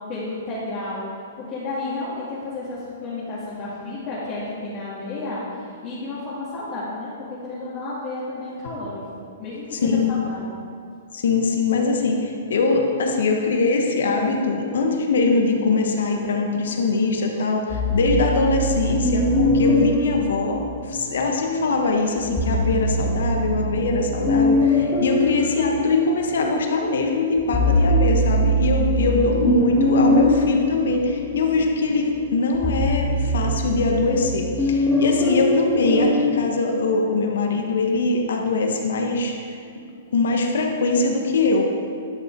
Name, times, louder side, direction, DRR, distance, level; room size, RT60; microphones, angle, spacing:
voice 1, 0.1-1.1 1.5-7.1 7.4-10.6 29.0-29.2, left 2 dB, 30° left, -9 dB, 2.0 m, -32 dB
voice 2, 9.8-10.1 11.1-20.6 20.9-39.6 40.1-41.6, left 3 dB, 80° left, 2 dB, 1.4 m, -22 dB
sound 1, 17.7-21.2 22.2-26.6 27.0-36.3, left 1 dB, 5° left, 1.4 m, -22 dB
11.5 x 6.8 x 4.6 m, 2.3 s
hypercardioid pair, 160°, 0 cm